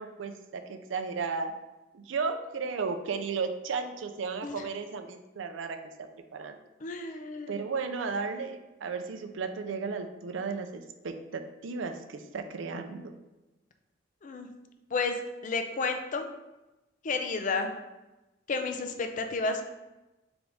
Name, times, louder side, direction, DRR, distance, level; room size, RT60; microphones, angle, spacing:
voice 1, 0.0-1.5 1.9-5.8 6.3-6.6 7.5-13.1, right 5 dB, 80° right, 7 dB, 0.4 m, -34 dB
voice 2, 6.8-7.6 14.2-14.5 14.9-15.2 15.4-16.3 17.0-17.7 18.5-19.6, left 4 dB, 45° left, 6 dB, 0.4 m, -31 dB
3.8 x 3.5 x 3.4 m, 1.0 s
head